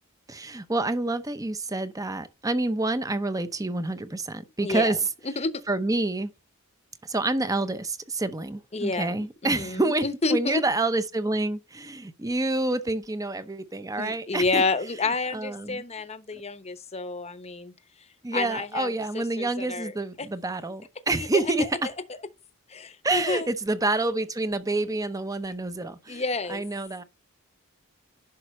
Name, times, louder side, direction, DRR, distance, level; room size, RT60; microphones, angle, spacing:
voice 1, 0.3-5.0 5.7-6.3 7.0-14.6 15.3-15.8 18.2-21.7 23.0-26.2 26.5-27.0, right 2 dB, 15° right, 0.7 m, -28 dB
voice 2, 4.6-5.0 5.2-5.5 8.7-10.6 14.0-17.7 18.3-19.9 20.2-20.3 21.1-21.7 22.7-23.5 26.1-26.6, left 3 dB, 30° left, 0.9 m, -29 dB
10.5 x 6.1 x 3.1 m
head